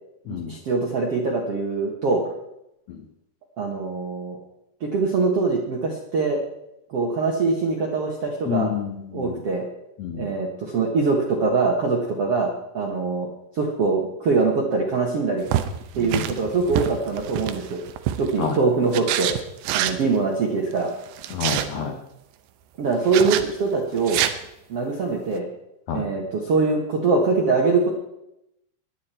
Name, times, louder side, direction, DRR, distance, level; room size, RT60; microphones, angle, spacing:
voice 1, 0.3-2.3 3.6-4.4 4.8-6.4 6.9-8.7 9.1-9.6 10.1-13.3 13.5-15.5 15.9-17.8 18.2-19.3 19.7-20.9 22.8-24.2 24.7-25.5 25.9-27.9, right 4 dB, 60° right, 0 dB, 1.5 m, -23 dB
voice 2, 8.5-9.4 10.0-10.3 16.0-16.3 18.4-18.6 21.3-21.9 25.9-26.0, left 7 dB, 75° left, 3 dB, 1.6 m, -28 dB
sound 1, 15.5-18.5 18.9-20.0 21.0-21.7 23.1-23.5 24.0-24.3, right 11 dB, 80° right, 2.9 m, -26 dB
22.0 x 8.7 x 4.4 m, 0.82 s
omnidirectional pair, 5.1 m